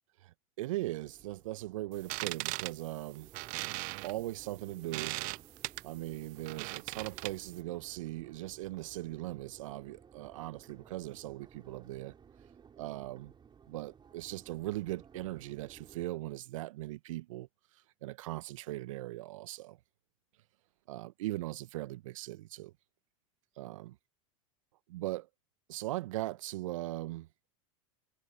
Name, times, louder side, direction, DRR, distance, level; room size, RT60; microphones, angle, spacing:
voice 1, 0.2-3.3 4.0-5.2 5.8-12.1 12.8-13.3 13.7-17.5 18.0-19.8 20.9-22.7 23.6-23.9 24.9-25.3 25.7-27.3, right 17 dB, 65° right, 1.3 m, -39 dB
Crowd, 0.9-16.0, right 7 dB, 25° right, 6.7 m, -58 dB
sound 1, 1.9-7.6, right 27 dB, 50° right, 0.6 m, -39 dB
hypercardioid pair, 90°, 18 cm